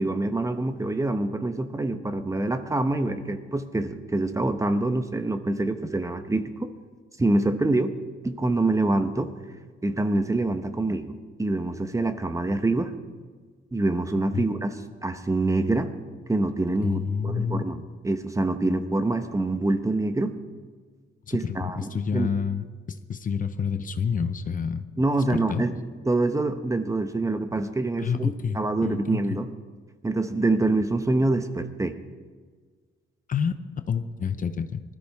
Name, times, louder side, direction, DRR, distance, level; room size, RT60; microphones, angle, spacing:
voice 1, 0.0-6.7 7.2-7.9 8.2-9.3 9.8-12.9 13.7-15.9 16.3-20.4 21.3-22.3 25.0-25.8 26.1-29.5 30.0-32.0, right 2 dB, 15° right, 9 dB, 1.0 m, -26 dB
voice 2, 16.8-17.6 21.3-24.9 25.3-25.6 28.0-29.4 33.3-34.8, left 6 dB, 40° left, 10 dB, 0.8 m, -28 dB
20.0 x 13.5 x 3.6 m, 1.5 s
cardioid pair, 90°, 20 cm